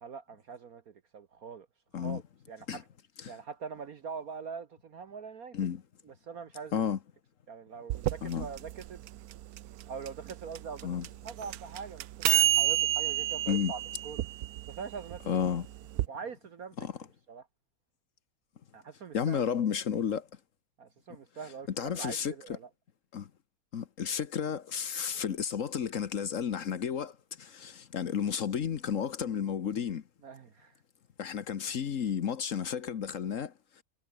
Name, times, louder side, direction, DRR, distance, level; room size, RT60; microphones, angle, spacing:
voice 1, 0.0-1.7 2.0-2.2 2.5-2.8 3.3-5.6 6.1-6.9 7.5-9.0 9.9-10.9 11.2-12.1 12.3-14.2 14.7-15.2 16.1-16.8 17.3-17.5 18.7-19.4 20.8-22.7 30.2-30.8, right 6 dB, 50° right, 1.3 m, -43 dB
sound 1, 7.9-16.1, right 14 dB, 80° right, 0.8 m, -30 dB
voice 2, 15.3-15.7 16.8-16.9 19.1-20.3 21.8-22.3 23.1-23.3 23.7-30.0 31.2-33.8, left 8 dB, 50° left, 1.1 m, -32 dB
omnidirectional pair, 2.2 m